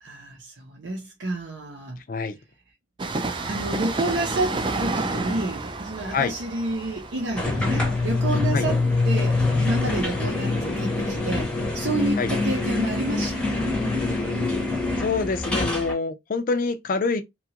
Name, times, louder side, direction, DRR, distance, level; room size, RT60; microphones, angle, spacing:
voice 1, 0.0-2.0 3.5-13.7, right 2 dB, 80° right, 0.8 m, -30 dB
Train, 3.0-10.4 10.7-10.8, right 3 dB, 25° right, 0.4 m, -31 dB
sound 1, 7.4-15.9, left 3 dB, 5° left, 0.7 m, -24 dB
voice 2, 15.0-17.2, left 4 dB, 50° left, 0.4 m, -25 dB
2.9 x 2.3 x 2.8 m
head